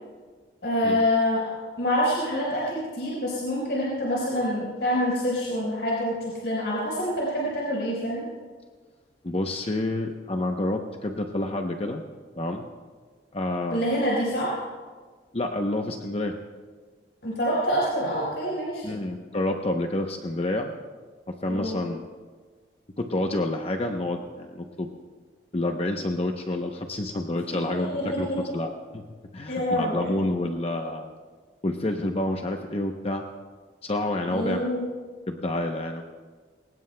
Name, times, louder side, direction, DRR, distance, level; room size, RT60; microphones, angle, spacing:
voice 1, 0.6-6.1 6.4-8.3 13.7-14.6 17.2-19.0 21.5-21.8 27.9-28.5 29.5-30.1 34.3-34.8, equal, 80° left, -5 dB, 4.3 m, -26 dB
voice 2, 9.2-12.0 12.4-12.7 13.3-13.8 15.3-16.4 18.8-20.7 21.3-22.0 23.0-24.9 25.5-28.3 28.5-29.0 29.3-31.1 31.6-33.2 33.8-34.6 35.3-36.0, left 1 dB, 35° left, 4 dB, 0.7 m, -28 dB
22.5 x 19.0 x 2.2 m, 1.5 s
head